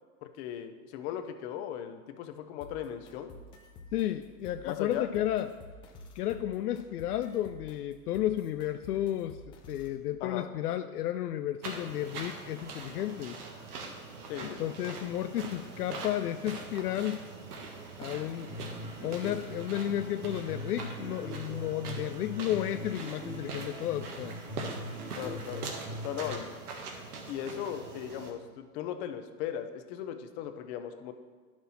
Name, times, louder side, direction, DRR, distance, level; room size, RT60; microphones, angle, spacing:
voice 1, 0.2-3.3 4.6-5.1 10.2-10.5 14.3-14.7 25.2-25.7 26.0-26.6 27.3-31.1, left 10 dB, 45° left, 7 dB, 0.9 m, -38 dB
sound 1, 2.6-10.0, left 2 dB, 15° left, 0.3 m, -51 dB
voice 2, 3.9-5.6 6.2-13.4 14.4-17.3 18.0-18.5 19.0-24.3, left 12 dB, 80° left, 8 dB, 0.5 m, -33 dB
sound 2, 11.6-28.3, right 3 dB, 75° right, 1.6 m, -43 dB
sound 3, 18.5-26.5, left 1 dB, 15° right, 1.6 m, -42 dB
10.5 x 6.1 x 4.2 m, 1.5 s
hypercardioid pair, 115°, 46 cm